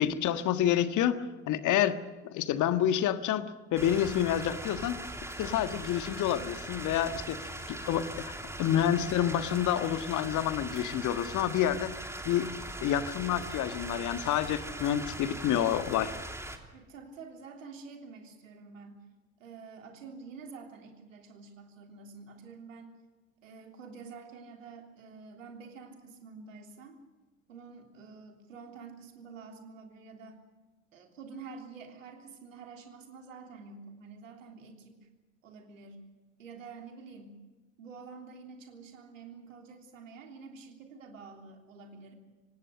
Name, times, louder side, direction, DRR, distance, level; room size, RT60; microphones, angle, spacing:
voice 1, 0.0-2.0 2.2-5.0 5.4-7.4 7.7-12.5 12.8-16.1, left 10 dB, 50° left, 10 dB, 1.6 m, -28 dB
sound 1, 3.8-16.6, right 1 dB, 5° right, 3.1 m, -40 dB
voice 2, 16.7-19.0 19.4-23.0 23.4-27.0 27.5-30.4 30.9-35.1 35.4-36.1 36.4-37.4 37.8-42.1, right 4 dB, 75° right, 3 dB, 3.3 m, -48 dB
25.5 x 18.5 x 6.6 m, 1.2 s
figure-of-eight pair, 60°, 39 cm